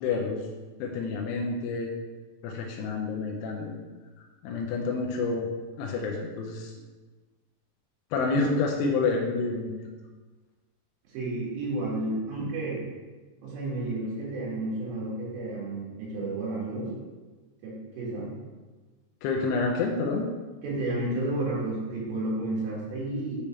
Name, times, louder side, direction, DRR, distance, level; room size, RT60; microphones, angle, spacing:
voice 1, 0.0-0.4 0.8-1.9 2.4-3.8 4.4-5.5 5.8-6.7 8.1-9.8 19.2-20.3, left 4 dB, 80° left, 0 dB, 2.7 m, -28 dB
voice 2, 11.1-12.8 13.4-16.9 17.6-18.3 20.6-23.4, right 2 dB, 80° right, -6 dB, 4.2 m, -31 dB
8.6 x 3.5 x 4.3 m, 1.3 s
omnidirectional pair, 5.1 m